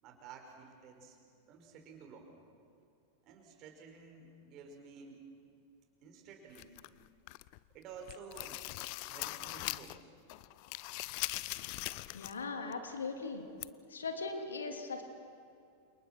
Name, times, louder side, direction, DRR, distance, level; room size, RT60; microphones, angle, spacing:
voice 1, 0.0-1.2 1.5-2.4 3.2-5.2 6.0-6.8 7.7-8.6 9.1-10.1, right 5 dB, 35° right, 3 dB, 5.4 m, -52 dB
sound 1, 6.5-7.6 8.0-10.0 10.3-12.4 12.7-12.8 13.6-13.7, left 21 dB, 45° left, 0.5 m, -41 dB
voice 2, 12.1-13.4 13.9-15.0, left 4 dB, 70° left, 5 dB, 3.0 m, -39 dB
29.5 x 28.0 x 6.1 m, 2.4 s
figure-of-eight pair, 90°, 0 cm